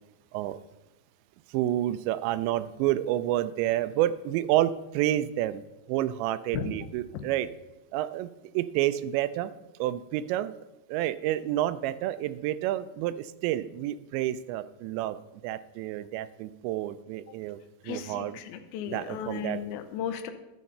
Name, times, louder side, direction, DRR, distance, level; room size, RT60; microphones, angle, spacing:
voice 1, 1.5-5.6 5.9-7.5 7.9-9.5 9.8-10.6 10.9-15.2 15.4-17.6 17.8-18.3 18.9-19.6, right 13 dB, 85° right, 14 dB, 2.8 m, -29 dB
voice 2, 17.8-20.3, left 8 dB, 85° left, 9 dB, 3.1 m, -35 dB
12.5 x 8.4 x 5.4 m, 0.98 s
omnidirectional pair, 5.2 m